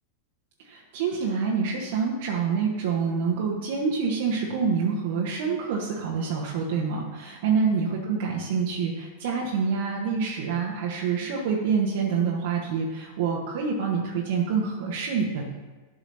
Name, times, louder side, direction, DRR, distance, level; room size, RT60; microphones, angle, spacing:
voice 1, 0.6-15.5, right 5 dB, 55° right, -3 dB, 1.5 m, -27 dB
12.0 x 4.9 x 7.1 m, 1.3 s
figure-of-eight pair, 90°, 0 cm